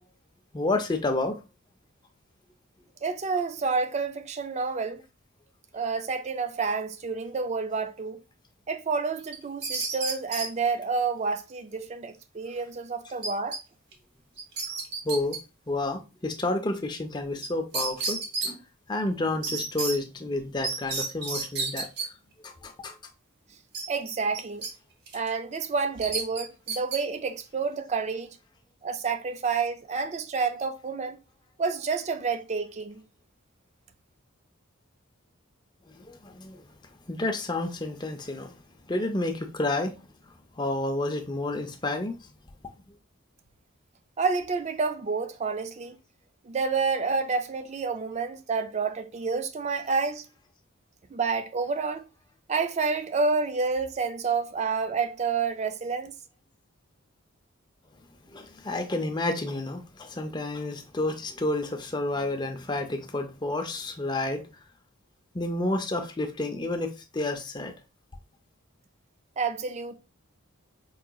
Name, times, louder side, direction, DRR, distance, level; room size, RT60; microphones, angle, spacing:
voice 1, 0.5-1.4 15.0-15.4 15.7-18.6 18.9-21.9 22.4-22.9 36.0-36.6 37.1-38.6 38.9-40.0 40.6-42.1 58.3-64.4 65.3-67.7, left 2 dB, 20° left, 0.5 m, -30 dB
voice 2, 3.0-5.0 5.7-8.2 8.7-13.6 23.9-24.7 25.1-28.3 28.8-31.2 31.6-33.0 44.2-45.9 46.5-50.3 51.1-52.0 52.5-56.1 69.4-69.9, right 4 dB, 30° right, 0.3 m, -29 dB
sound 1, 9.3-10.5 13.2-13.6 13.9-14.0 14.4-15.4 17.4-17.5 17.7-18.5 19.4-20.0 20.6-22.1 23.7-24.7 25.1-25.3 26.0-27.0, right 4 dB, 50° right, 0.9 m, -31 dB
4.7 x 2.8 x 2.3 m
head